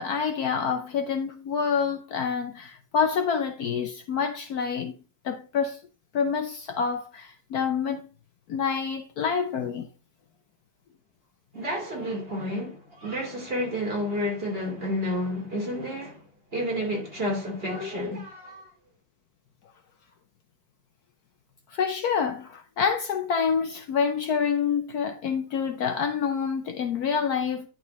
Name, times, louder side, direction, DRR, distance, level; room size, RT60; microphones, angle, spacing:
voice 1, 0.0-5.0 5.2-5.8 6.1-8.0 8.5-9.9 21.7-27.7, left 6 dB, 65° left, 1.2 m, -27 dB
voice 2, 11.5-16.2 16.5-18.7, equal, 30° right, 3.1 m, -30 dB
10.5 x 4.4 x 4.2 m
omnidirectional pair, 2.0 m